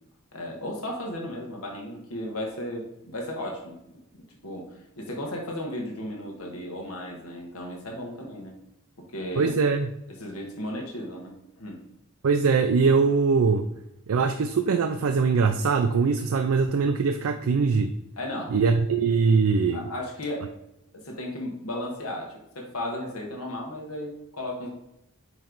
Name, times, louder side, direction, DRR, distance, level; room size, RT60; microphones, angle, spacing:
voice 1, 0.3-4.0 4.4-8.5 9.1-9.5 10.2-11.8 18.2-18.6 19.7-20.5 20.9-24.7, left 1 dB, 80° left, 0 dB, 1.5 m, -35 dB
voice 2, 9.4-9.9 12.2-13.7 14.1-17.9 18.5-19.9, right 5 dB, 70° right, 7 dB, 0.4 m, -22 dB
8.6 x 3.2 x 3.9 m, 0.84 s
head